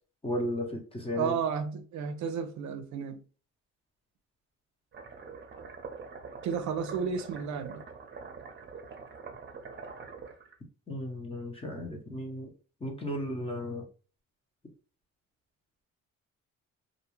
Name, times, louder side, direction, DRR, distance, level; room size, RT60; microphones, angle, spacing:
voice 1, 0.2-1.3 10.9-12.5 12.8-13.9, left 1 dB, 20° left, 0.8 m, -34 dB
voice 2, 1.1-3.2 6.4-7.8, right 6 dB, 70° right, 0.5 m, -32 dB
sound 1, 4.9-10.5, right 5 dB, 35° right, 0.7 m, -45 dB
2.5 x 2.3 x 3.0 m
cardioid pair, 90°, 30 cm